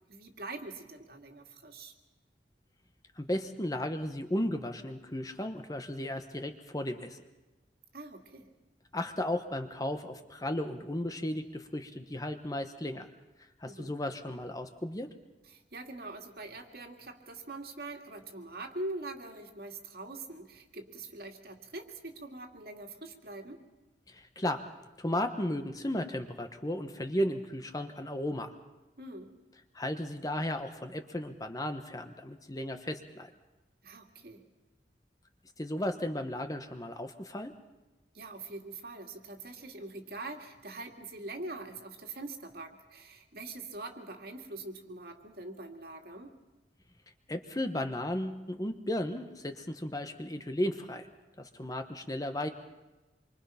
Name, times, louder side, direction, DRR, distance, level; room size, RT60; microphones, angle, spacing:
voice 1, 0.1-1.9 7.9-8.5 13.6-13.9 15.5-23.6 29.0-29.3 33.8-34.4 38.1-46.3, right 2 dB, 60° right, 3 dB, 2.3 m, -43 dB
voice 2, 3.2-7.2 8.9-13.1 13.6-15.1 24.1-24.7 25.0-28.6 29.7-33.3 35.6-37.5 47.3-51.1 51.4-52.5, left 1 dB, 20° left, 7 dB, 1.1 m, -35 dB
27.0 x 24.0 x 5.8 m, 1.1 s
head